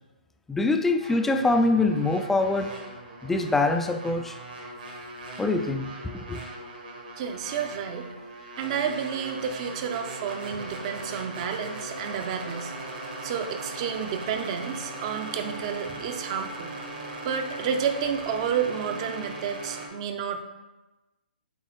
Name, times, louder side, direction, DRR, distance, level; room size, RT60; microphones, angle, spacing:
voice 1, 0.5-2.7 3.2-4.4 5.4-6.4, left 2 dB, 5° left, 0.3 m, -24 dB
sound 1, 1.0-19.9, right 2 dB, 60° right, 1.4 m, -39 dB
voice 2, 7.2-8.1 8.6-12.7 13.2-16.7 17.2-20.4, right 7 dB, 35° right, 0.6 m, -30 dB
8.0 x 3.7 x 3.2 m
figure-of-eight pair, 130°, 5 cm